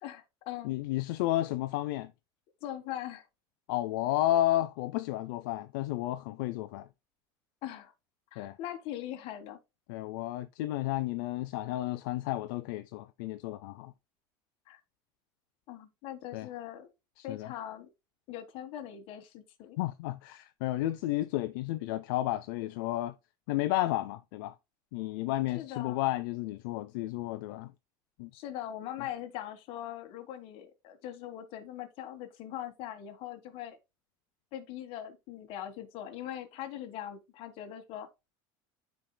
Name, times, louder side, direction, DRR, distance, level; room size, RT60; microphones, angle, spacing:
voice 1, 0.0-0.7 2.6-3.3 7.6-7.9 8.3-9.6 14.7-14.8 15.7-16.9 17.2-17.9 18.3-19.8 25.5-26.0 28.3-33.8 34.5-38.1, left 11 dB, 55° left, 1.5 m, -41 dB
voice 2, 0.6-2.1 3.7-6.9 8.4-8.6 9.9-13.9 16.3-16.5 17.2-17.5 19.8-23.1 23.5-24.5 24.9-27.7 28.2-28.3, left 15 dB, 80° left, 0.5 m, -32 dB
13.0 x 4.7 x 2.2 m
supercardioid pair, 130°, 11 cm